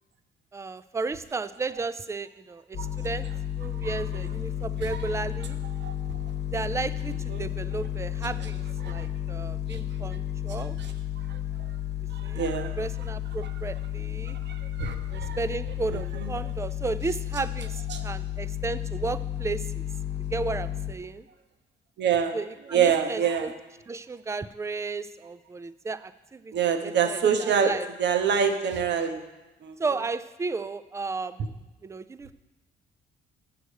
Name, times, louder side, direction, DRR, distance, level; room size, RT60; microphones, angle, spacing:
voice 1, 0.5-3.3 3.6-5.6 6.5-10.8 12.2-12.4 12.8-14.4 15.1-19.9 20.3-21.3 22.3-23.5 23.9-26.5 26.8-27.9 29.8-31.5 31.8-32.3, right 4 dB, 15° right, 15 dB, 0.4 m, -33 dB
sound 1, 2.7-20.9, left 11 dB, 60° left, 1.1 m, -32 dB
voice 2, 12.1-12.8 14.4-15.4 15.9-16.3 17.9-18.0 22.0-22.4 22.7-23.5 26.5-27.7 28.0-29.2 29.6-29.7, right 7 dB, 60° right, 7 dB, 1.0 m, -26 dB
7.6 x 6.9 x 6.4 m, 1.0 s
cardioid pair, 90°, 20 cm